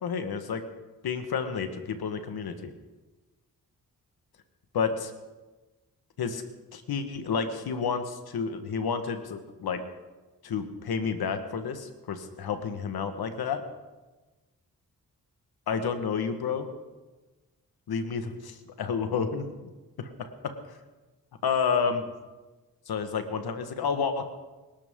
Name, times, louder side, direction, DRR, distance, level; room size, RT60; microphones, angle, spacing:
voice 1, 0.0-0.6 1.0-2.7 4.7-5.1 6.2-6.4 6.7-9.8 10.4-13.6 15.7-16.7 17.9-19.5 20.0-20.8 21.4-22.0 22.9-24.2, left 6 dB, 85° left, 8 dB, 1.5 m, -30 dB
26.0 x 12.0 x 3.8 m, 1.2 s
cardioid pair, 50°, 36 cm